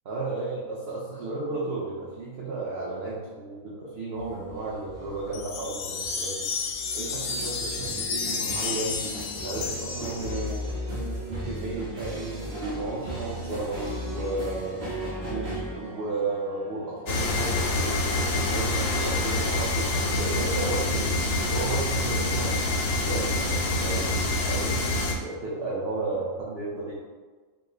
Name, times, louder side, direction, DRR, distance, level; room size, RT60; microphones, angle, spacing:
voice 1, 0.0-6.5 6.9-9.0 9.4-12.3 12.7-14.8 15.2-21.1 21.5-24.7 25.2-26.9, right 3 dB, 55° right, -6 dB, 0.9 m, -33 dB
sound 1, 4.2-19.2, equal, 35° right, 1.3 m, -37 dB
sound 2, 5.3-10.7, left 5 dB, 85° left, 1.0 m, -32 dB
sound 3, 17.1-25.1, left 2 dB, 60° left, 0.7 m, -26 dB
5.0 x 2.1 x 3.8 m, 1.4 s
omnidirectional pair, 1.4 m